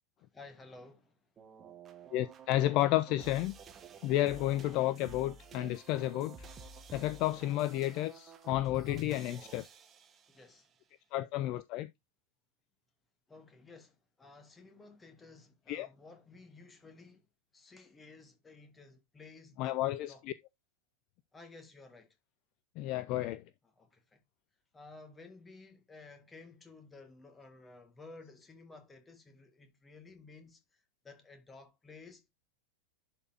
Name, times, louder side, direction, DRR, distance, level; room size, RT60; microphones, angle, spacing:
voice 1, 0.3-1.2 10.3-10.7 13.3-17.2 17.5-20.2 21.3-22.1 23.8-24.2 24.7-30.6 31.0-32.3, left 3 dB, 15° left, 1.7 m, -54 dB
sound 1, 1.4-10.6, right 4 dB, 25° right, 1.2 m, -52 dB
voice 2, 2.1-3.5 4.0-6.5 6.9-9.7 11.1-11.9 15.7-15.9 19.6-20.3 22.8-23.4, left 15 dB, 40° left, 0.4 m, -31 dB
11.0 x 4.3 x 2.8 m
figure-of-eight pair, 90°, 0 cm